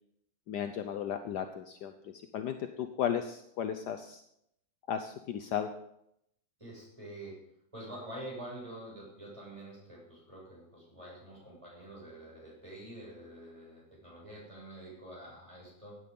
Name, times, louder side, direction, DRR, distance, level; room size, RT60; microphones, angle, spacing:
voice 1, 0.5-4.2 4.9-5.7, left 9 dB, 65° left, 8 dB, 1.2 m, -35 dB
voice 2, 6.6-7.4 7.7-16.0, right 1 dB, 15° right, -4 dB, 6.9 m, -47 dB
16.5 x 9.4 x 5.3 m, 0.76 s
omnidirectional pair, 2.1 m